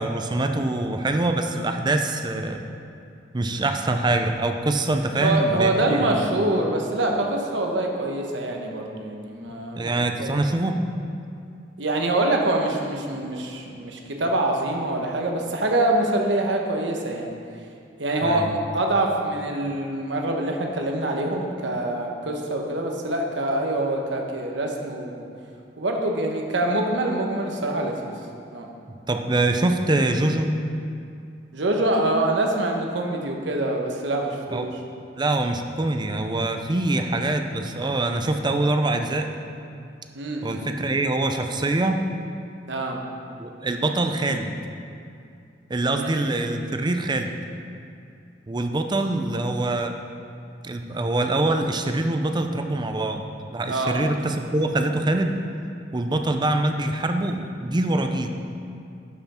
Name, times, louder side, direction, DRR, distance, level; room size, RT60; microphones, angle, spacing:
voice 1, 0.0-2.6 3.3-6.2 9.7-10.8 18.2-18.5 29.1-30.5 34.5-34.7 35.1-39.3 40.4-42.0 43.4-44.5 45.7-47.3 48.5-50.0 50.6-53.2 53.5-55.3 55.9-58.3, right 2 dB, 25° right, 6 dB, 0.5 m, -24 dB
voice 2, 5.2-9.9 10.2-10.4 11.8-17.3 18.0-25.2 25.8-28.1 28.5-28.7 31.5-34.7 40.1-40.7 42.7-43.0 46.0-46.1 53.7-54.0, right 1 dB, 80° right, 1 dB, 1.1 m, -25 dB
11.5 x 5.7 x 4.3 m, 2.5 s
head